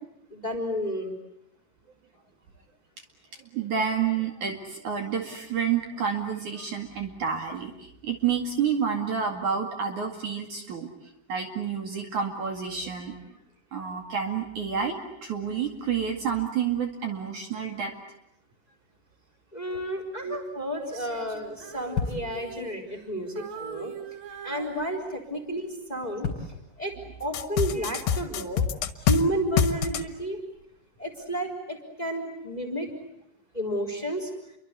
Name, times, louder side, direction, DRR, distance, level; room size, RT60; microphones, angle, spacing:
voice 1, 0.3-1.1 19.5-23.9 24.4-28.7 29.0-30.4 31.0-32.9 33.5-34.3, equal, 10° left, 5 dB, 3.4 m, -31 dB
voice 2, 3.5-10.9 11.3-13.2 13.7-17.9 20.2-20.4, right 7 dB, 50° right, 4 dB, 3.3 m, -29 dB
sound 1, 19.7-31.4, left 5 dB, 30° left, 5.4 m, -41 dB
Female singing, 20.8-23.1 23.4-25.4 25.9-26.2, right 7 dB, 90° right, 4.5 m, -43 dB
sound 2, 27.3-29.2 29.6-30.0, left 7 dB, 75° left, 3.4 m, -24 dB
29.5 x 24.0 x 8.3 m, 0.81 s
omnidirectional pair, 4.8 m